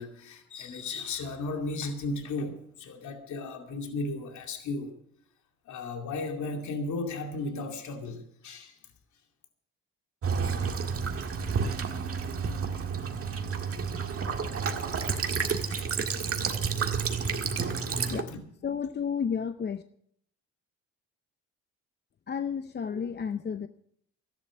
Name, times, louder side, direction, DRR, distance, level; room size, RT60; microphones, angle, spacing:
voice 1, 0.0-4.9 5.7-8.8 17.9-18.4, left 3 dB, 70° left, 4 dB, 2.5 m, -35 dB
Child speech kid speaking / Bird vocalization bird call bird song / Stream, 10.2-18.2, right 5 dB, 50° right, 1.8 m, -30 dB
voice 2, 18.6-19.8 22.3-23.7, left 7 dB, 35° left, 10 dB, 0.6 m, -31 dB
13.5 x 11.5 x 6.2 m, 0.70 s
cardioid pair, 90°, 30 cm